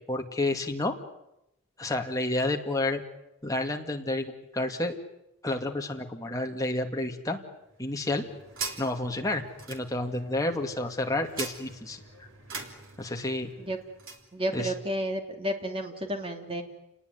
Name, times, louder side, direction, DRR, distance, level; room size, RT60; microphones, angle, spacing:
voice 1, 0.1-0.9 1.8-3.0 3.4-4.9 5.4-7.4 7.8-8.2 8.8-9.4 9.7-12.3 13.0-13.5 14.5-14.7, left 2 dB, 15° left, 3 dB, 2.3 m, -30 dB
sound 1, 7.7-14.3, right 4 dB, 60° right, 3.5 m, -42 dB
voice 2, 14.3-16.6, equal, 25° right, 4 dB, 3.0 m, -31 dB
30.0 x 19.5 x 9.5 m, 0.88 s
head